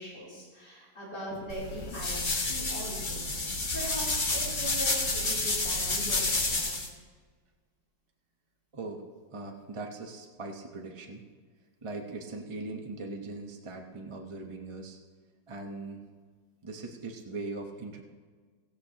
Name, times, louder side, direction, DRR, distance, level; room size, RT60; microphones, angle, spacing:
voice 1, 0.0-3.5 3.7-6.8, equal, 65° left, -7 dB, 4.1 m, -41 dB
sound 1, 1.5-6.9, left 2 dB, 30° left, 1.1 m, -30 dB
voice 2, 8.7-9.0 9.3-11.2 11.8-15.0 15.5-16.0 16.6-18.0, right 3 dB, 25° right, 1 dB, 0.6 m, -40 dB
17.0 x 16.0 x 2.9 m, 1.5 s
omnidirectional pair, 2.0 m